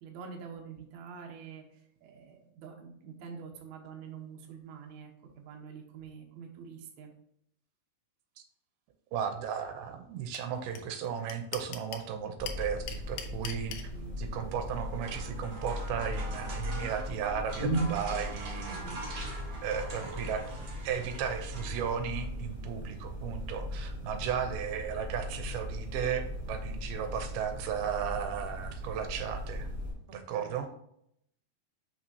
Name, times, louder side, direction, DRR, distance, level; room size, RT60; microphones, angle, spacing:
voice 1, 0.0-7.1 13.9-14.2 18.7-19.1 30.1-30.6, right 6 dB, 70° right, 2 dB, 1.9 m, -46 dB
voice 2, 9.1-13.7 14.2-20.5 20.8-29.7 30.1-30.7, right 8 dB, 90° right, 7 dB, 2.6 m, -35 dB
sound 1, 10.3-10.4 10.8-10.9 11.0-12.1 12.5-13.8, left 9 dB, 80° left, 1.9 m, -38 dB
Ambience hotel room Jecklindisk, 12.4-29.9, equal, 15° left, 1.6 m, -38 dB
sound 2, 14.6-22.2, right 2 dB, 50° right, 1.6 m, -44 dB
5.9 x 5.9 x 2.7 m, 0.73 s
omnidirectional pair, 4.4 m